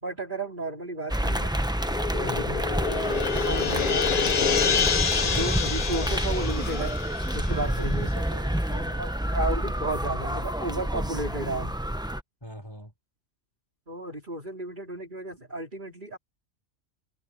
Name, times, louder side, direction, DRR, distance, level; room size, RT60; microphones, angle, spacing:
voice 1, 0.0-1.6 2.1-2.6 2.9-4.1 4.6-4.9 5.2-6.9 7.3-8.1 9.0-11.7 13.9-16.2, right 2 dB, 35° right, 4.3 m, -33 dB
sound 1, 1.1-12.2, right 1 dB, 5° right, 0.7 m, -29 dB
sound 2, 1.7-8.3, left 6 dB, 45° left, 1.1 m, -27 dB
voice 2, 2.2-2.6 7.5-9.0 12.4-12.9, equal, 20° left, 6.1 m, -39 dB
omnidirectional pair, 1.4 m